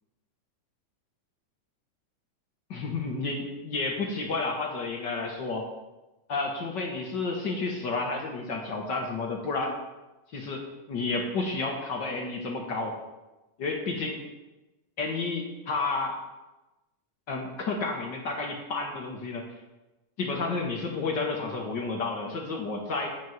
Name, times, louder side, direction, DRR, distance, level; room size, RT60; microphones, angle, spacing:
voice 1, 2.7-5.7 6.3-9.8 10.3-13.0 13.6-14.2 15.0-16.2 17.3-19.4 20.2-23.1, left 3 dB, 55° left, 1 dB, 1.3 m, -31 dB
9.1 x 6.2 x 7.2 m, 1.0 s
omnidirectional pair, 3.6 m